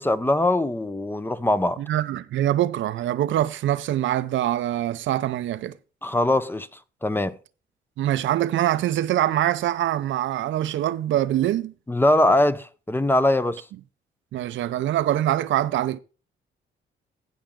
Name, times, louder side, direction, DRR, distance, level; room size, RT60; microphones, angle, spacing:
voice 1, 0.0-1.8 6.0-6.7 7.0-7.4 11.9-13.7, left 1 dB, 10° left, 0.7 m, -22 dB
voice 2, 1.8-5.7 8.0-11.7 14.3-16.0, right 12 dB, 75° right, 0.7 m, -24 dB
16.0 x 5.8 x 3.7 m
cardioid pair, 90°, 20 cm